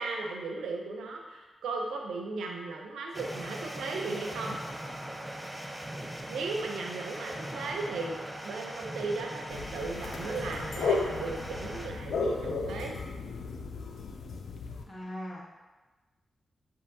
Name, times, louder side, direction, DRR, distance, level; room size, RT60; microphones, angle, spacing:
voice 1, 0.0-4.6 6.3-13.0, right 3 dB, 90° right, 1 dB, 0.5 m, -36 dB
sound 1, 3.1-11.9, right 1 dB, 10° right, 0.5 m, -40 dB
sound 2, 9.5-14.8, left 4 dB, 80° left, 0.4 m, -34 dB
voice 2, 14.9-15.4, equal, 35° left, -4 dB, 1.4 m, -39 dB
7.1 x 2.7 x 2.7 m, 1.2 s
cardioid pair, 50°, 0 cm